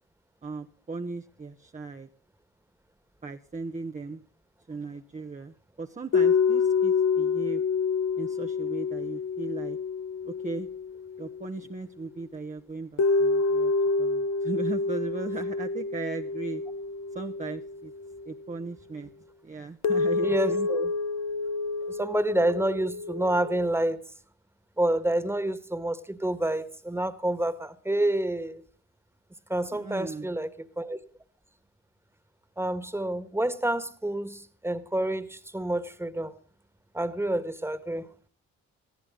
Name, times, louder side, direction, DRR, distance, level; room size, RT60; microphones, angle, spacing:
voice 1, 0.4-2.1 3.2-4.2 4.7-7.6 8.2-9.8 10.2-10.7 11.2-13.7 14.0-16.6 17.1-17.9 18.3-19.1 19.4-20.7 29.7-30.3, right 3 dB, 25° right, 1.0 m, -37 dB
sound 1, 6.1-11.6 13.0-18.4 19.8-23.7, left 4 dB, 60° left, 0.9 m, -28 dB
voice 2, 20.2-20.9 21.9-24.0 24.8-28.6 29.5-30.5 30.8-31.0 32.6-36.3 36.9-38.1, right 1 dB, 10° right, 1.7 m, -28 dB
20.0 x 14.5 x 3.9 m
cardioid pair, 70°, 30 cm